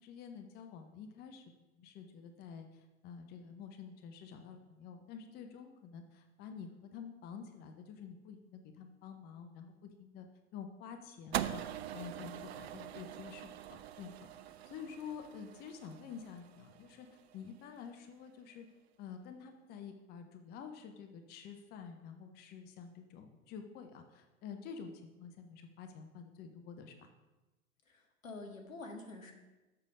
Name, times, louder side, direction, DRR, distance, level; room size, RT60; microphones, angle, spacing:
voice 1, 0.0-1.4 1.8-10.3 10.5-11.6 11.9-14.3 14.6-18.7 19.0-27.1, left 6 dB, 25° left, 6 dB, 0.7 m, -49 dB
sound 1, 11.3-17.7, right 11 dB, 50° right, 0.5 m, -43 dB
voice 2, 27.8-29.3, left 2 dB, 75° left, 3 dB, 1.6 m, -47 dB
6.9 x 6.8 x 4.9 m, 1.1 s
figure-of-eight pair, 90°, 40 cm